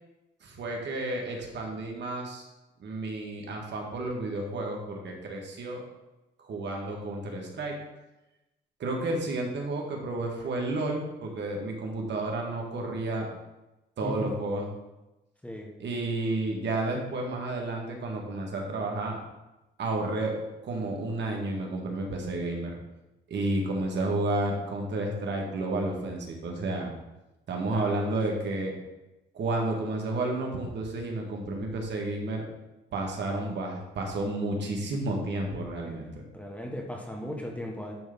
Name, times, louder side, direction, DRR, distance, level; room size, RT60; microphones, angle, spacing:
voice 1, 0.4-2.4 2.8-5.8 6.4-7.8 8.8-13.3 14.0-14.7 15.8-19.2 19.8-20.3 20.6-22.7 23.3-26.9 27.5-28.7 29.3-32.4 32.9-36.1, right 2 dB, 60° right, 0 dB, 1.9 m, -31 dB
voice 2, 27.7-28.2 35.8-36.0 36.3-37.9, equal, 5° left, 0 dB, 1.5 m, -37 dB
10.5 x 3.7 x 5.4 m, 0.99 s
cardioid pair, 90°, 20 cm